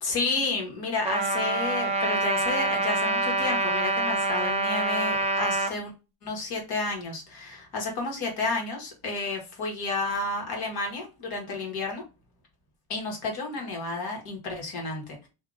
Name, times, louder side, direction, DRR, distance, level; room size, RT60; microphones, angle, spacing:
voice 1, 0.0-5.9 6.2-12.0 12.9-15.3, left 3 dB, 60° left, 1 dB, 1.5 m, -31 dB
Trumpet, 1.0-5.7, right 2 dB, 15° right, 0.3 m, -26 dB
2.8 x 2.4 x 3.6 m, 0.29 s
cardioid pair, 165°, 41 cm